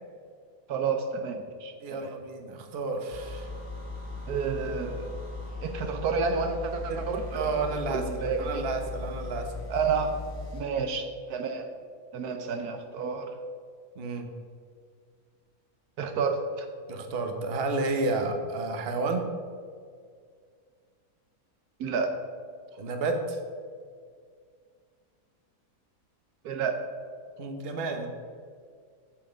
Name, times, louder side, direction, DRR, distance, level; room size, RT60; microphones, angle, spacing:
voice 1, 0.7-2.1 4.3-5.1 5.6-8.7 9.7-10.1 10.5-11.7 12.1-13.3 16.0-16.7 21.8-22.1 26.4-26.8, right 5 dB, 75° right, 6 dB, 1.3 m, -30 dB
voice 2, 1.8-3.5 6.9-7.1 7.3-9.5 14.0-14.3 16.9-19.3 22.7-23.4 27.4-28.1, right 3 dB, 40° right, 4 dB, 1.1 m, -31 dB
sound 1, 3.1-10.7, left 3 dB, 35° left, 1.7 m, -38 dB
8.8 x 7.5 x 5.2 m, 2.1 s
omnidirectional pair, 1.7 m